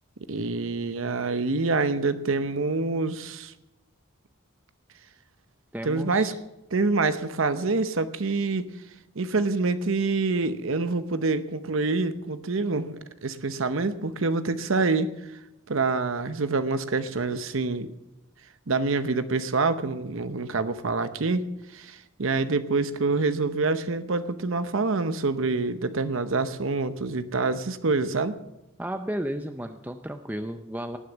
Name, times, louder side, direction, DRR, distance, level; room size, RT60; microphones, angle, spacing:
voice 1, 0.3-3.5 5.8-6.3 6.7-8.7 9.2-15.1 15.7-17.9 18.7-28.3, right 3 dB, 65° right, 11 dB, 0.8 m, -26 dB
voice 2, 5.7-6.4 28.8-31.0, right 1 dB, 10° right, 7 dB, 0.5 m, -33 dB
18.5 x 6.5 x 7.0 m, 0.90 s
head